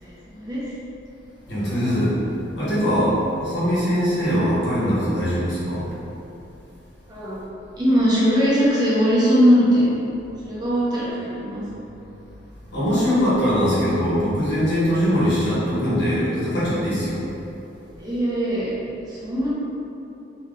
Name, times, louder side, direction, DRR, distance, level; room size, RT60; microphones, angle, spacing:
voice 1, 0.0-0.6 7.1-7.4 7.8-9.9 10.4-11.6 18.0-18.7 19.1-19.5, equal, 20° right, -8 dB, 0.8 m, -20 dB
voice 2, 1.5-2.1 2.6-3.1 3.4-5.8 12.7-17.2, equal, 65° left, -10 dB, 1.5 m, -21 dB
3.4 x 3.2 x 3.7 m, 3.0 s
head